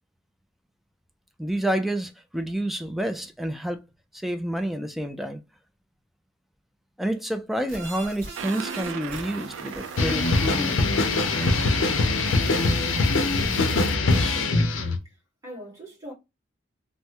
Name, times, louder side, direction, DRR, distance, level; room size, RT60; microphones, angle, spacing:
voice 1, 1.4-3.8 4.1-5.4 7.0-10.9, right 1 dB, ahead, 0.3 m, -29 dB
sound 1, 7.7-14.0, right 2 dB, 40° right, 2.0 m, -41 dB
sound 2, 8.3-13.3, right 7 dB, 80° right, 0.4 m, -38 dB
sound 3, 10.0-15.0, left 3 dB, 80° left, 0.5 m, -22 dB
voice 2, 13.9-15.2 15.4-16.1, right 1 dB, 15° right, 1.7 m, -43 dB
3.3 x 2.0 x 2.8 m
head